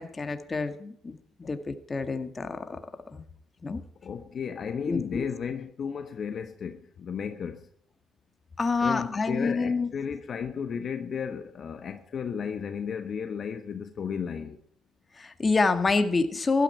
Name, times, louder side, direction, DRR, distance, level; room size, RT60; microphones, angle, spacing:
voice 1, 0.0-2.8 3.1-3.2 3.6-3.8 4.9-5.3 8.6-9.9 15.2-16.6, left 3 dB, 30° left, 1.9 m, -27 dB
voice 2, 4.0-7.7 8.8-14.6, left 7 dB, 50° left, 1.2 m, -34 dB
15.5 x 12.5 x 4.5 m
cardioid pair, 85°, 0 cm